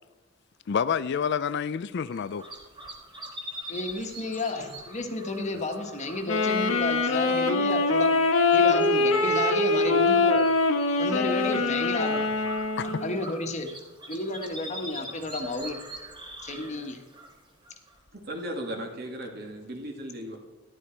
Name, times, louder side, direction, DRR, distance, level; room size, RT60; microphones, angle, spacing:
voice 1, 0.7-2.5 12.8-13.0, left 7 dB, 55° left, 0.4 m, -28 dB
sound 1, 2.0-18.1, equal, 20° right, 1.9 m, -44 dB
voice 2, 3.7-8.1 8.5-10.4 11.0-12.3 12.8-13.7 14.1-15.8 16.4-17.0, left 2 dB, 35° left, 1.4 m, -31 dB
Wind instrument woodwind instrument, 6.2-13.2, left 3 dB, 85° left, 1.4 m, -23 dB
voice 3, 18.1-20.4, equal, 50° right, 2.4 m, -36 dB
13.5 x 11.0 x 4.5 m
head